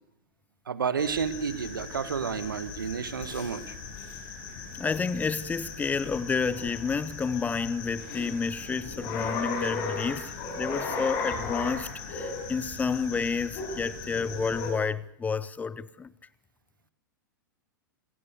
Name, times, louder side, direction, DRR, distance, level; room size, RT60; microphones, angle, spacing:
voice 1, 0.7-3.6, right 6 dB, 75° right, 1.6 m, -30 dB
sound 1, 1.0-14.7, left 4 dB, 45° left, 7.7 m, -37 dB
voice 2, 4.8-16.1, left 5 dB, 15° left, 0.8 m, -30 dB
27.5 x 17.0 x 6.7 m
figure-of-eight pair, 100°, 11 cm